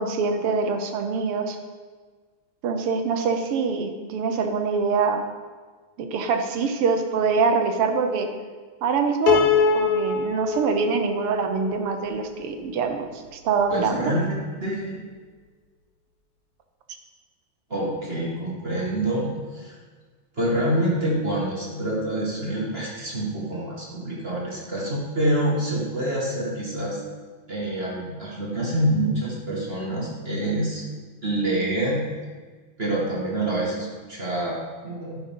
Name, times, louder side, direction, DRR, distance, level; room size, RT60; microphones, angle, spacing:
voice 1, 0.0-1.6 2.6-5.2 6.0-8.3 8.8-9.4 9.7-14.1, right 5 dB, 90° right, 6 dB, 1.9 m, -24 dB
Piano, 9.3-12.5, left 5 dB, 85° left, 1.7 m, -24 dB
voice 2, 13.7-15.0 17.7-19.8 20.4-27.0 27.5-30.8 31.2-32.1 32.8-35.2, right 1 dB, 30° right, -4 dB, 2.0 m, -26 dB
11.5 x 10.0 x 3.8 m, 1.5 s
omnidirectional pair, 2.4 m